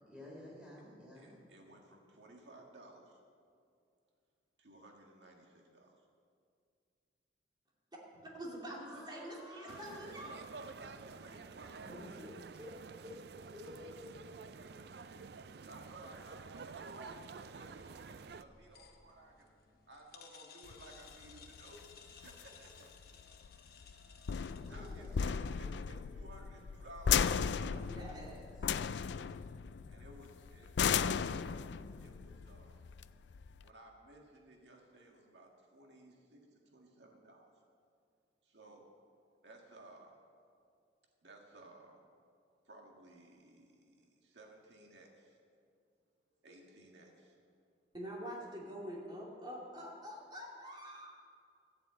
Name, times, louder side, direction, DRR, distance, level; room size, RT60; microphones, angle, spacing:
voice 1, 0.1-1.4 8.1-10.1 11.9-14.8 24.6-25.3, left 1 dB, 5° right, -4 dB, 3.7 m, -52 dB
voice 2, 1.1-3.2 4.6-5.5 8.9-9.0 10.1-12.2 15.7-19.5 19.9-21.9 22.2-23.0 24.7-28.3 29.9-31.6 32.0-32.8 33.6-37.5 38.4-38.9 39.4-40.2 41.2-42.0 42.7-45.4 46.4-47.4, right 2 dB, 80° right, 1 dB, 1.8 m, -57 dB
voice 3, 8.2-10.4 27.8-28.4 47.9-51.1, equal, 25° right, -3 dB, 2.6 m, -46 dB
sound 1, 9.7-18.4, right 5 dB, 60° right, 0.4 m, -50 dB
sound 2, 18.0-25.4, left 7 dB, 55° left, 1.1 m, -59 dB
sound 3, 20.7-33.7, left 7 dB, 80° left, 0.4 m, -36 dB
14.0 x 7.9 x 8.7 m, 2.3 s
head